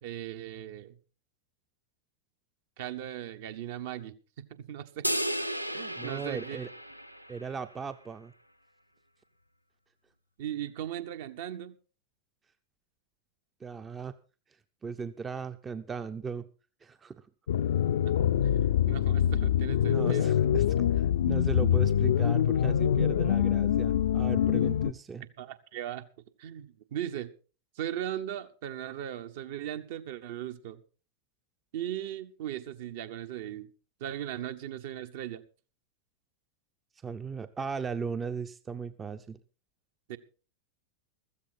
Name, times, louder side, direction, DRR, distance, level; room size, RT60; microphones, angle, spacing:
voice 1, 0.0-1.0 2.8-4.2 4.5-5.2 5.7-6.6 10.4-11.8 18.0-18.2 18.4-18.5 18.9-20.3 25.4-26.1 26.4-27.3 27.8-30.8 31.7-33.7 34.0-35.4 40.1-40.2, right 11 dB, 50° right, 9 dB, 1.4 m, -38 dB
sound 1, 5.0-7.6, equal, 90° right, 0.7 m, -34 dB
voice 2, 6.0-6.7 7.3-8.3 13.6-14.2 14.8-16.5 16.8-17.2 19.9-20.6 20.9-25.2 37.0-39.4, right 5 dB, 20° right, 11 dB, 0.8 m, -37 dB
sound 2, 17.5-24.9, left 9 dB, 60° left, 0.7 m, -25 dB
15.0 x 14.0 x 4.2 m, 0.36 s
figure-of-eight pair, 90°, 0 cm